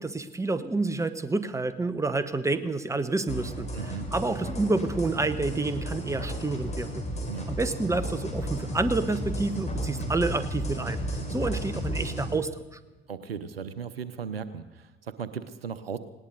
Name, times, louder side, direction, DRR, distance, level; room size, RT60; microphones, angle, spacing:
voice 1, 0.0-3.7 4.1-6.9 7.5-11.0 11.3-12.8, right 3 dB, 10° right, 12 dB, 1.1 m, -28 dB
sound 1, 3.3-12.3, equal, 25° left, 3.9 m, -33 dB
voice 2, 3.7-4.1 7.3-7.5 13.1-16.0, right 7 dB, 85° right, 14 dB, 0.8 m, -37 dB
19.5 x 18.0 x 4.0 m, 1.2 s
figure-of-eight pair, 60°, 29 cm